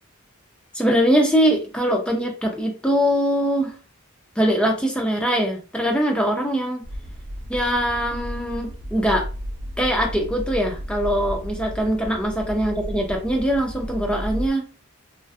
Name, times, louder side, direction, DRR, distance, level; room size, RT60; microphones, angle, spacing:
voice 1, 0.7-3.7 4.4-6.8 7.5-9.3 9.8-14.7, equal, 5° left, 2 dB, 0.4 m, -22 dB
sound 1, 6.8-14.5, equal, 80° right, 0.7 m, -33 dB
2.5 x 2.3 x 2.4 m, 0.35 s
head